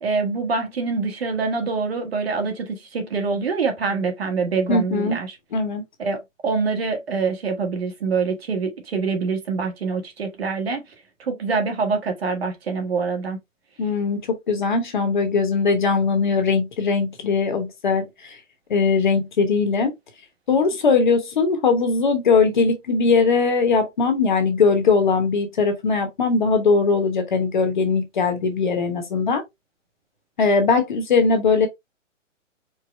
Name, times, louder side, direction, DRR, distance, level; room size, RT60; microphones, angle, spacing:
voice 1, 0.0-5.4 6.0-10.8 11.2-13.4, right 4 dB, 50° right, 1.3 m, -25 dB
voice 2, 4.7-5.2 5.5-5.8 13.8-18.4 18.7-19.9 20.5-29.4 30.4-31.7, left 4 dB, 40° left, 1.0 m, -20 dB
4.7 x 2.1 x 4.2 m
hypercardioid pair, 170°, 38 cm